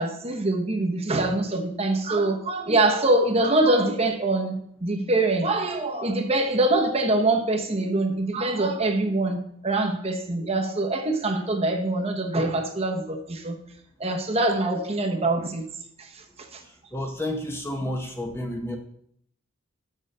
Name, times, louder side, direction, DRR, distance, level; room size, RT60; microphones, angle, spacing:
voice 1, 0.0-13.6 14.0-15.6 16.5-16.6, right 2 dB, 30° right, 3 dB, 1.0 m, -24 dB
voice 2, 16.6-18.8, left 1 dB, 10° left, 3 dB, 0.9 m, -31 dB
6.6 x 6.3 x 6.6 m, 0.69 s
head